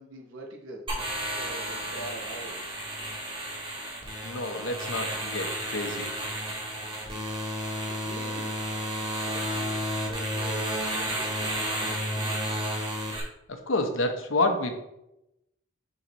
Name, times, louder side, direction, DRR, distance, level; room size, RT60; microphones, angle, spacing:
voice 1, 0.0-2.7 7.8-8.5 9.2-9.8 10.0-12.4, right 2 dB, 75° right, 0 dB, 1.0 m, -44 dB
sound 1, 0.9-13.2, equal, 25° right, 1.6 m, -32 dB
voice 2, 4.2-6.1 9.5-9.7 13.5-14.7, left 2 dB, 70° left, 6 dB, 0.8 m, -29 dB
6.1 x 3.8 x 4.1 m, 0.88 s
head